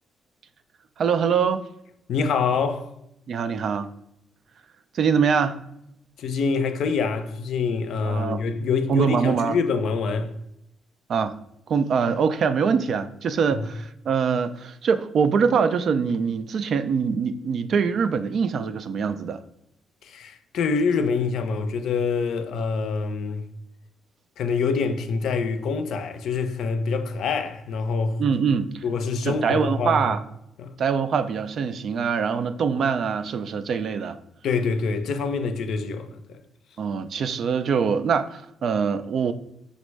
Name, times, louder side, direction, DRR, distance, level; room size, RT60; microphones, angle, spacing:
voice 1, 1.0-1.6 3.3-3.9 4.9-5.6 8.0-8.4 8.9-9.6 11.1-11.4 11.7-19.4 28.2-28.8 29.2-30.2 30.8-34.2 36.8-39.3, right 6 dB, 60° right, 0.3 m, -23 dB
voice 2, 2.1-2.9 6.2-10.3 13.5-13.7 20.0-23.4 24.4-28.2 28.8-30.1 30.6-30.8 34.4-36.4, left 5 dB, 70° left, 0.5 m, -25 dB
5.1 x 2.1 x 4.5 m
cardioid pair, 90°, 0 cm